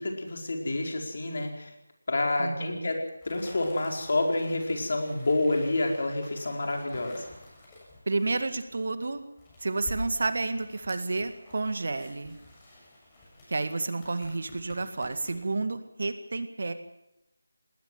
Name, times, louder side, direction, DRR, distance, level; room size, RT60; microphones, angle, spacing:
voice 1, 0.0-1.7 2.1-3.0 3.2-7.3, left 2 dB, 50° left, 2 dB, 4.6 m, -28 dB
voice 2, 2.4-2.9 8.1-9.2 9.6-12.4 13.5-16.7, right 3 dB, 50° right, 10 dB, 1.9 m, -30 dB
sound 1, 3.2-15.6, left 1 dB, 15° left, 7.3 m, -48 dB
19.5 x 19.5 x 7.6 m, 0.88 s
figure-of-eight pair, 160°, 0 cm